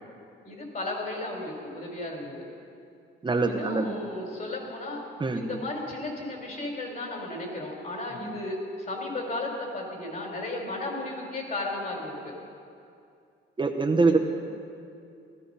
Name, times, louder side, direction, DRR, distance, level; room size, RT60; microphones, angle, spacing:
voice 1, 0.4-2.5 3.4-5.0 5.3-12.3 14.0-14.2, left 2 dB, 45° left, 0 dB, 4.3 m, -34 dB
voice 2, 3.2-4.0 5.2-5.6 8.2-8.4 13.6-14.2, right 3 dB, 25° right, 3 dB, 1.0 m, -24 dB
16.5 x 13.0 x 5.6 m, 2.5 s
cardioid pair, 90°, 20 cm